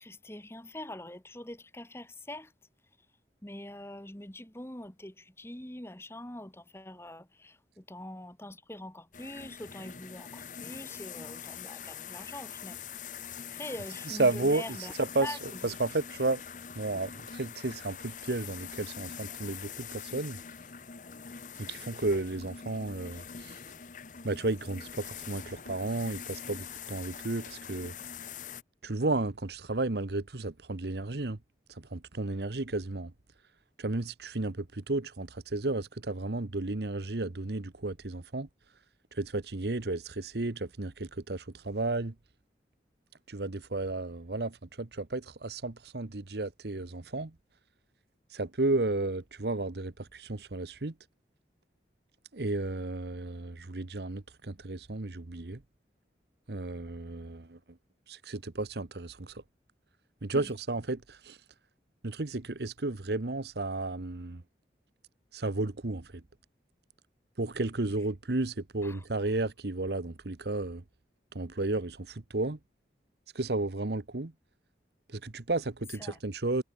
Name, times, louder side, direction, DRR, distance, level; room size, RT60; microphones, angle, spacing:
voice 1, 0.0-2.5 3.4-12.8 13.5-14.9 15.2-15.7 60.3-60.5 68.8-69.1 75.9-76.2, left 1 dB, 15° left, 1.8 m, -44 dB
sound 1, 9.1-28.6, left 7 dB, 45° left, 0.9 m, -44 dB
voice 2, 14.1-14.6 15.0-15.3 15.6-16.4 16.8-20.4 21.6-23.6 24.2-27.9 28.8-31.4 31.8-33.1 33.8-38.5 39.1-42.1 43.3-47.3 48.3-50.9 52.3-55.6 56.5-57.6 58.1-59.4 60.2-61.4 62.0-64.4 65.3-66.1 67.4-70.8 71.3-72.6 73.3-74.3 75.1-76.6, right 2 dB, 65° right, 1.1 m, -33 dB
head